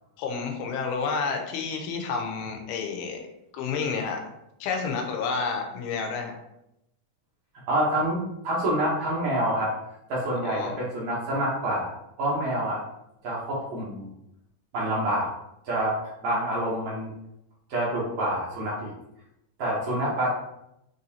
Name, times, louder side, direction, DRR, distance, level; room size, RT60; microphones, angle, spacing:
voice 1, 0.2-3.2 3.5-4.2 4.6-6.4 10.4-10.7, left 5 dB, 80° left, 3 dB, 2.6 m, -30 dB
voice 2, 7.7-9.7 10.1-11.9 12.2-12.8 13.2-14.1 14.7-15.3 15.6-17.1 17.7-18.9 19.6-20.3, right 1 dB, 70° right, -6 dB, 1.8 m, -27 dB
6.8 x 2.6 x 2.8 m, 0.84 s
omnidirectional pair, 4.5 m